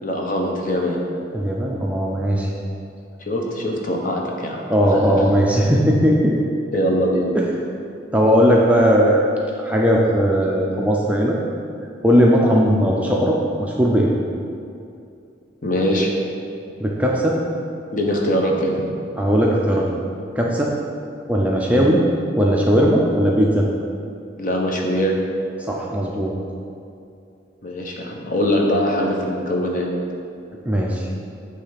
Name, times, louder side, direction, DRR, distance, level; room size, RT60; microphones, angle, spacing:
voice 1, 0.0-1.0 3.3-4.6 4.9-5.2 6.7-7.3 15.6-16.1 17.9-18.7 24.4-25.2 27.6-29.9, equal, 45° left, 0 dB, 0.9 m, -22 dB
voice 2, 1.3-2.5 4.7-6.4 7.3-7.5 8.1-9.3 9.6-11.4 12.0-14.1 16.8-17.4 19.2-19.9 20.4-20.7 21.3-22.0 22.4-23.7 25.6-26.3 30.6-31.1, equal, 5° right, -2 dB, 0.5 m, -18 dB
8.7 x 3.4 x 5.7 m, 2.5 s
head